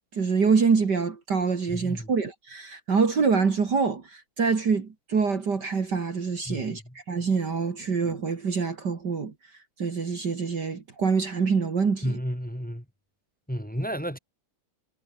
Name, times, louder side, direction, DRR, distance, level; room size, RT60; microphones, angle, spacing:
voice 1, 0.0-9.3 9.8-12.2, right 5 dB, 50° right, 2.8 m, -25 dB
voice 2, 6.5-6.8 12.0-12.8 13.5-14.2, equal, 5° left, 3.7 m, -31 dB
omnidirectional pair, 2.4 m